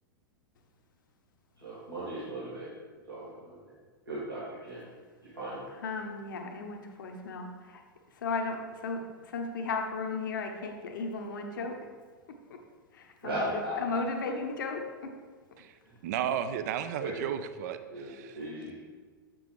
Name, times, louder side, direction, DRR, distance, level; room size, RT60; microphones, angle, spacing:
voice 1, 1.6-2.7 3.1-3.7 4.1-4.8 5.3-5.6 13.2-14.0 15.8-15.9 17.0-17.2 17.9-18.7, right 1 dB, 85° right, -11 dB, 2.1 m, -37 dB
voice 2, 5.8-7.8 8.1-11.8 12.3-12.6 12.9-15.1, left 3 dB, 60° left, 3 dB, 0.9 m, -35 dB
voice 3, 16.0-18.4, right 9 dB, 50° right, 10 dB, 0.4 m, -34 dB
7.4 x 6.1 x 3.2 m, 1.5 s
figure-of-eight pair, 95°, 12 cm